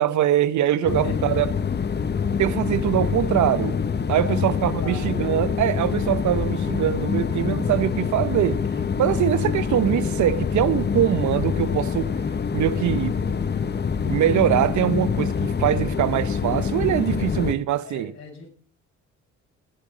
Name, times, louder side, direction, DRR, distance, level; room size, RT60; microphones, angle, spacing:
voice 1, 0.0-1.5 2.4-3.8 4.1-8.6 9.0-12.1 12.5-13.2 14.1-18.1, right 11 dB, 75° right, 0.9 m, -23 dB
voice 2, 0.8-1.4 4.0-5.3 17.0-17.6 17.8-18.5, left 3 dB, 60° left, 6.0 m, -40 dB
sound 1, 0.9-17.5, left 6 dB, 35° left, 1.0 m, -25 dB
18.5 x 8.3 x 5.0 m
cardioid pair, 90°, 30 cm